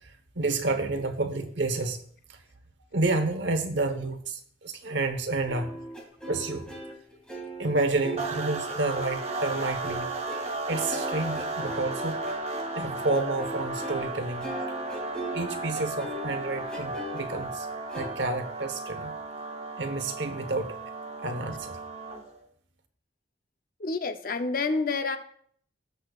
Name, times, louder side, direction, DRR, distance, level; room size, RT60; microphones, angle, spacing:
voice 1, 0.0-2.0 2.3-2.4 2.9-5.7 6.3-6.7 7.6-10.1 10.7-12.2 12.7-14.5 15.3-17.7 17.9-19.1 19.8-20.8 21.2-21.8, right 2 dB, 65° right, 8 dB, 1.1 m, -30 dB
sound 1, 5.5-14.1 14.4-17.2 17.9-18.1, right 1 dB, 5° left, 2.2 m, -39 dB
sound 2, 8.2-22.4, right 2 dB, 35° right, 1.0 m, -35 dB
voice 2, 23.8-25.2, left 3 dB, 45° left, 8 dB, 0.6 m, -28 dB
18.0 x 6.5 x 2.4 m, 0.63 s
head